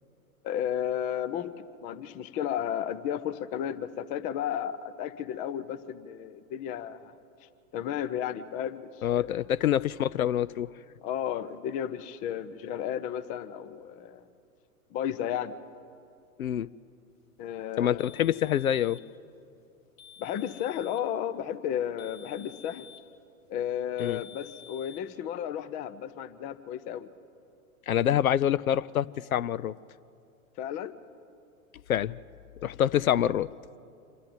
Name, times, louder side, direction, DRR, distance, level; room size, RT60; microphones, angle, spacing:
voice 1, 0.4-1.5 1.8-7.1 7.7-9.3 11.0-14.2 14.9-15.6 17.4-18.1 20.2-22.9 23.5-27.1 30.6-30.9, left 10 dB, 20° left, 15 dB, 0.5 m, -33 dB
voice 2, 9.0-10.7 16.4-16.7 17.8-19.0 24.0-24.2 27.9-29.7 31.9-32.2 32.6-33.5, left 10 dB, 70° left, 20 dB, 0.5 m, -26 dB
sound 1, 18.0-19.1 20.0-21.1 22.0-23.1 24.0-25.1, left 9 dB, 45° left, 1.8 m, -51 dB
26.5 x 12.5 x 9.1 m, 2.5 s
figure-of-eight pair, 100°, 43 cm